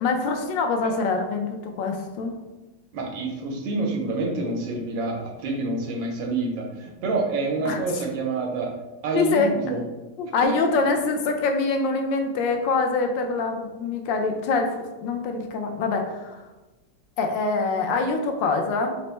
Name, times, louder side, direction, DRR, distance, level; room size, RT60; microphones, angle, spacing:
voice 1, 0.0-2.3 7.6-7.8 9.1-9.5 10.2-16.4 17.2-19.0, left 4 dB, 80° left, 4 dB, 1.3 m, -24 dB
voice 2, 2.9-8.7 9.0-9.8, right 3 dB, 90° right, 0 dB, 1.5 m, -27 dB
4.1 x 2.0 x 4.3 m, 1.1 s
omnidirectional pair, 2.0 m